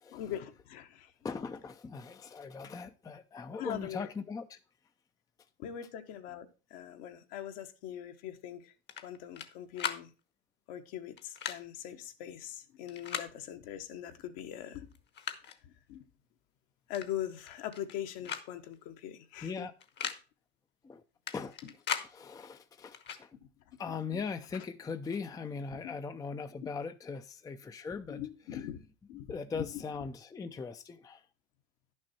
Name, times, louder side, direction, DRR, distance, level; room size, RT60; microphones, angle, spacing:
voice 1, 0.1-1.3 3.6-4.1 5.6-8.7 9.0-10.1 10.7-14.9 15.6-16.1 16.9-19.7 21.6-21.7 23.9-24.7 25.7-25.9 26.6-26.7 28.1-28.8 29.1-30.1, left 11 dB, 60° left, 1.3 m, -42 dB
voice 2, 1.2-4.6 19.4-19.7 20.0-20.1 20.8-21.0 21.3-23.4 23.8-28.2 28.5-28.7 29.3-31.3, left 5 dB, 10° left, 0.5 m, -40 dB
sound 1, 8.9-9.5 9.8-10.0 11.2-11.6 12.9-13.3 14.4-14.5 14.9-15.6 16.9-17.1 17.4-17.9 18.2-18.5 18.7-18.8 19.8-20.2 21.3-22.1 22.9-23.2, left 7 dB, 35° left, 1.0 m, -38 dB
10.5 x 6.3 x 4.3 m
hypercardioid pair, 100°, 32 cm